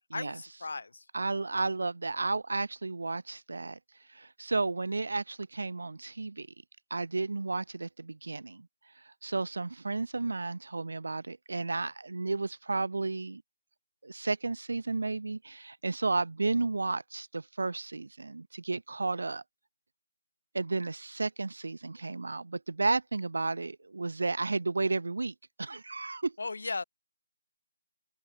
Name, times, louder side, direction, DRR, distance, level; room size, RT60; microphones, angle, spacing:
voice 1, 0.1-1.1 26.4-26.8, left 3 dB, 65° left, 2.0 m, -36 dB
voice 2, 1.1-3.8 4.1-6.5 6.9-8.7 9.2-13.4 14.0-19.4 20.5-26.3, right 3 dB, 85° right, 0.6 m, -32 dB
open air
hypercardioid pair, 180°, 0 cm